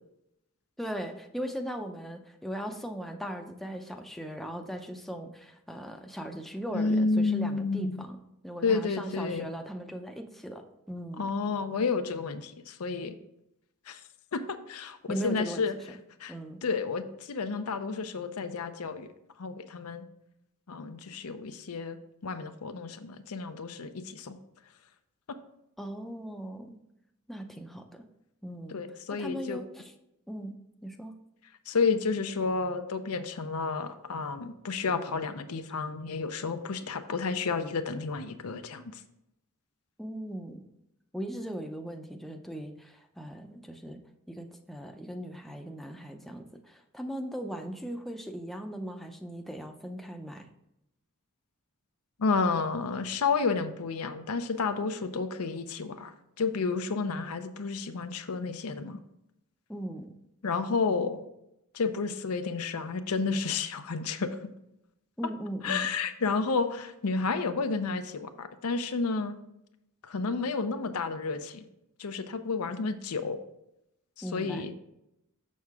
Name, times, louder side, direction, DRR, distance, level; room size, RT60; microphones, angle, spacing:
voice 1, 0.8-8.2 8.4-11.3 15.1-15.7 16.3-16.6 25.8-26.8 27.3-28.1 28.4-29.9 30.3-30.6 30.8-31.2 40.0-40.6 41.1-44.0 44.3-50.5 59.7-60.1 65.2-65.9 74.2-74.7, equal, ahead, 4 dB, 0.5 m, -38 dB
voice 2, 6.7-8.0 8.6-9.5 11.2-13.2 13.9-14.0 14.3-15.7 16.2-16.3 16.6-19.1 19.4-20.0 20.7-22.0 22.2-24.4 28.7-29.6 31.7-38.8 52.2-59.0 60.4-61.2 61.7-64.4 65.6-69.4 70.0-71.6 72.0-73.4 74.3-74.7, left 4 dB, 85° left, 8 dB, 0.6 m, -31 dB
6.5 x 6.4 x 3.5 m, 0.84 s
head